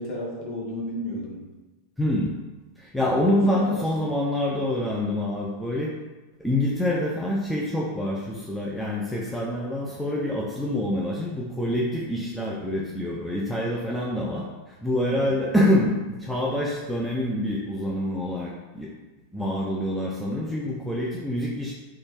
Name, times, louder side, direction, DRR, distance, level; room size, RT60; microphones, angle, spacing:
voice 1, 0.0-1.4 3.1-4.2 15.1-15.2, left 1 dB, 35° left, -3 dB, 0.9 m, -33 dB
voice 2, 2.0-2.3 2.8-5.9 6.4-15.9 16.2-18.9 19.3-21.7, left 1 dB, ahead, -4 dB, 0.4 m, -26 dB
3.1 x 2.3 x 3.1 m, 1.2 s
figure-of-eight pair, 90°, 0 cm